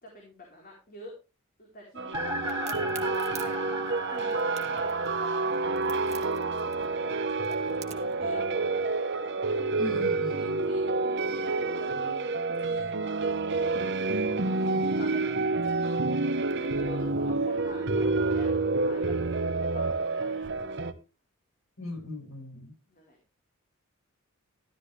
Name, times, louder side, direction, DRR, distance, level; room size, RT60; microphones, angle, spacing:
voice 1, 0.0-1.1 1.6-3.0 3.4-4.4 4.7-8.8 10.3-13.1 14.0-16.0 16.5-20.5 22.9-23.2, left 1 dB, 40° left, -1 dB, 4.2 m, -47 dB
sound 1, 2.0-20.9, right 3 dB, 55° right, 1.1 m, -28 dB
sound 2, 2.1-10.1, equal, 10° right, 2.8 m, -39 dB
Crack, 2.5-8.2, right 10 dB, 30° right, 1.7 m, -46 dB
voice 2, 9.8-10.5 14.6-14.8 21.8-22.7, left 3 dB, 65° left, 0 dB, 8.0 m, -38 dB
14.0 x 12.0 x 3.3 m, 0.28 s
head